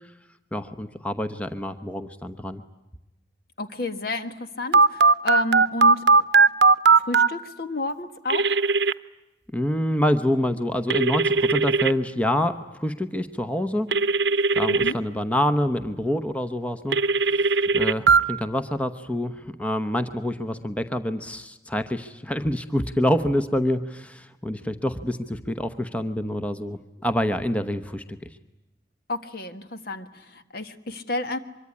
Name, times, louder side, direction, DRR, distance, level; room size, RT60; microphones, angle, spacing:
voice 1, 0.5-2.6 9.5-13.9 14.6-28.0, left 1 dB, 10° left, 9 dB, 0.9 m, -26 dB
voice 2, 3.6-6.2 6.9-8.5 14.7-15.0 29.1-31.4, left 2 dB, 55° left, 9 dB, 1.7 m, -31 dB
Telephone, 4.7-7.3 8.3-8.9 10.9-11.9 13.9-14.9 16.9-18.2, right 4 dB, 80° right, 0.9 m, -18 dB
24.5 x 23.0 x 9.7 m, 0.99 s
head